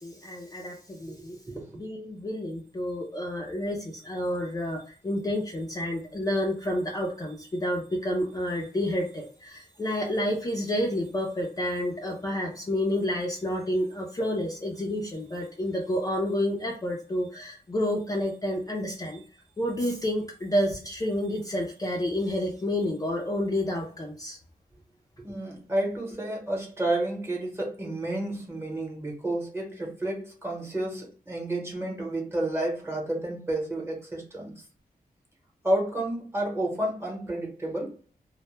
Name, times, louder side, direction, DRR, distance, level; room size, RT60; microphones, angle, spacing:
voice 1, 0.0-1.4 1.7-19.2 19.6-24.4, left 1 dB, 25° left, -1 dB, 0.4 m, -29 dB
voice 2, 1.1-1.7 25.2-34.6 35.6-37.9, right 1 dB, 15° right, -1 dB, 0.8 m, -31 dB
2.1 x 2.0 x 3.0 m, 0.42 s
wide cardioid pair, 135°, 16 cm